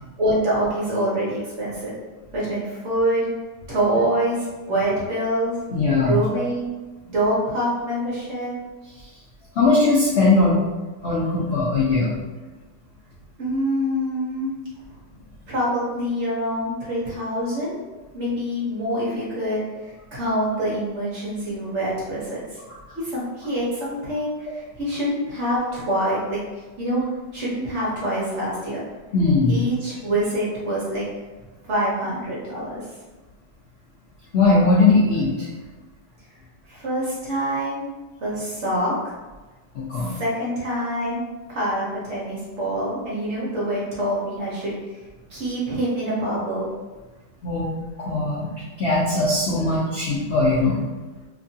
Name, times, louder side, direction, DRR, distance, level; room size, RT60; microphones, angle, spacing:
voice 1, 0.2-1.9 2.3-3.3 3.7-5.6 6.0-6.6 7.1-8.5 13.4-14.5 15.5-17.8 18.1-19.6 20.1-22.4 22.9-26.4 26.8-27.1 27.3-28.8 29.5-31.0 31.7-32.8 36.7-37.9 38.2-38.9 40.0-41.2 41.5-44.8 45.3-46.7, right 1 dB, 50° right, -7 dB, 1.0 m, -25 dB
voice 2, 5.7-6.2 9.6-10.6 11.0-12.2 29.1-29.6 34.3-35.5 39.7-40.1 47.4-47.7 48.0-48.5 48.8-50.8, left 3 dB, 80° left, -6 dB, 0.5 m, -19 dB
2.9 x 2.6 x 2.7 m, 1.2 s
omnidirectional pair, 1.8 m